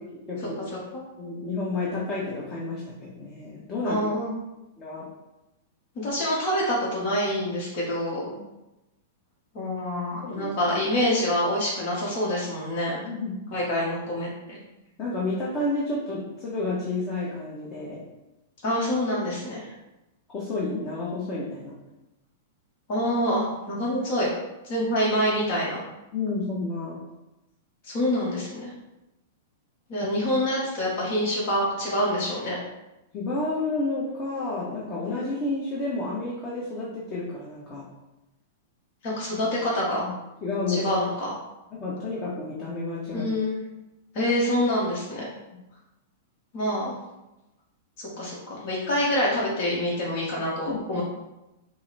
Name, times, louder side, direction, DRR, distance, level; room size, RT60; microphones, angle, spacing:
voice 1, 0.1-0.6 1.2-4.0 4.8-5.1 8.3-8.4 10.2-10.5 13.0-13.4 15.0-18.0 20.3-21.8 26.1-27.0 33.1-37.9 40.0-40.1 40.4-40.9 41.7-43.3 45.5-45.6 50.7-51.0, left 2 dB, 30° left, -6 dB, 1.2 m, -30 dB
voice 2, 3.8-4.4 5.9-8.3 9.5-13.0 13.5-14.6 18.6-19.7 22.9-24.3 24.6-25.8 27.8-28.7 29.9-32.6 39.0-40.0 40.7-41.3 43.1-43.6 44.1-45.3 46.5-46.9 48.0-51.0, equal, 45° left, -6 dB, 1.4 m, -26 dB
5.3 x 2.2 x 4.1 m, 0.97 s
hypercardioid pair, 110°, 0 cm